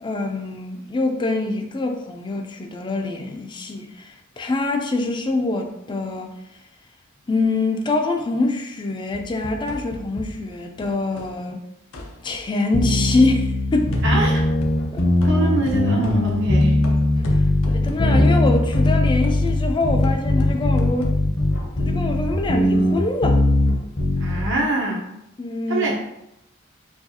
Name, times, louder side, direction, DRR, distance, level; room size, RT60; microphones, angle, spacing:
voice 1, 0.0-6.3 7.3-11.6 12.2-14.0 14.9-15.1 17.6-21.2 21.8-23.4 25.4-26.1, left 2 dB, 25° left, 0.4 m, -24 dB
sound 1, 9.1-11.4 11.9-12.5 13.9-21.1, left 1 dB, 90° left, 0.5 m, -36 dB
sound 2, 12.7-24.5, left 1 dB, 55° left, 0.7 m, -20 dB
voice 2, 14.0-14.4 15.2-16.8 24.2-25.1 25.7-26.0, right 2 dB, 65° right, 0.8 m, -24 dB
4.6 x 2.3 x 2.8 m
head